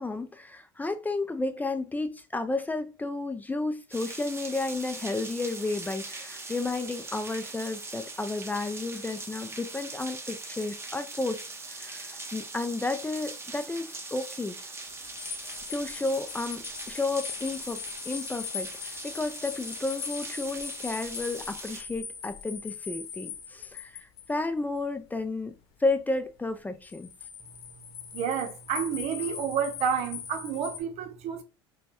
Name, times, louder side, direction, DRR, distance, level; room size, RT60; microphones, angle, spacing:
voice 1, 0.0-14.6 15.7-17.8 18.1-25.5 25.8-27.1, left 2 dB, 10° left, 0.5 m, -32 dB
sound 1, 3.9-21.8, right 3 dB, 20° right, 0.9 m, -41 dB
sound 2, 15.0-24.3 26.8-30.8, left 8 dB, 65° left, 0.8 m, -40 dB
voice 2, 28.1-31.4, right 7 dB, 55° right, 0.8 m, -30 dB
5.1 x 2.3 x 2.9 m
hypercardioid pair, 75°, 13 cm